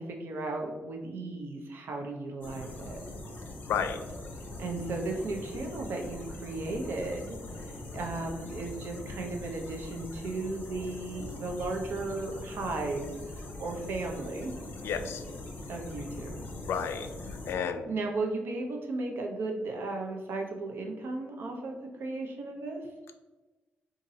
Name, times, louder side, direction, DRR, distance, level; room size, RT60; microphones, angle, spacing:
voice 1, 0.0-3.0 4.6-14.5 15.7-16.4 17.9-22.8, right 2 dB, 65° right, 2 dB, 0.6 m, -35 dB
sound 1, 2.4-17.5, left 2 dB, 45° left, 0.6 m, -42 dB
voice 2, 3.7-4.0 14.8-15.2 16.7-17.1 17.5-17.9, left 7 dB, 80° left, 8 dB, 0.3 m, -31 dB
2.7 x 2.6 x 4.0 m, 1.2 s
wide cardioid pair, 155°, 4 cm